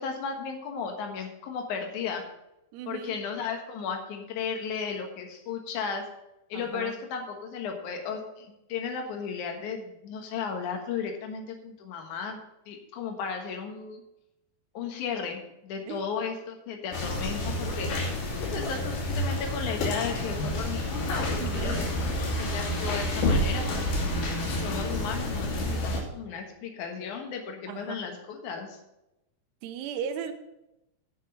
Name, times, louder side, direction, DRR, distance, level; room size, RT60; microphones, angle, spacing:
voice 1, 0.0-2.2 2.9-6.0 6.5-12.4 12.7-14.0 14.7-24.1 24.6-28.8, left 6 dB, 60° left, 3 dB, 2.3 m, -35 dB
voice 2, 2.7-3.2 6.5-7.0 15.9-16.0 21.4-21.9 27.7-28.0 29.6-30.3, right 8 dB, 90° right, 8 dB, 2.9 m, -36 dB
sound 1, 16.9-26.0, left 1 dB, 80° left, 4.8 m, -29 dB
9.9 x 6.2 x 6.7 m, 0.90 s
omnidirectional pair, 4.9 m